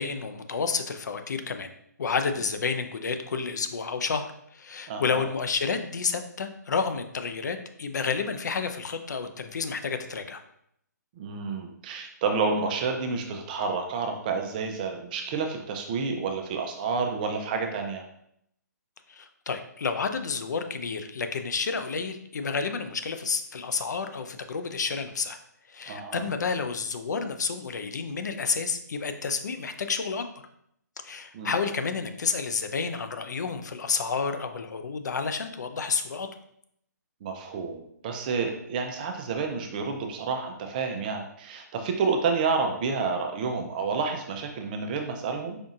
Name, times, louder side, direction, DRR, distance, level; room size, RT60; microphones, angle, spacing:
voice 1, 0.0-1.7 2.0-10.4 19.1-25.4 25.7-30.3 31.0-36.3, left 5 dB, 70° left, 8 dB, 0.5 m, -30 dB
voice 2, 4.9-5.3 11.2-18.0 25.9-26.3 31.3-31.5 37.2-45.6, right 4 dB, 30° right, 4 dB, 0.4 m, -29 dB
5.0 x 2.7 x 2.4 m, 0.72 s
hypercardioid pair, 150°, 10 cm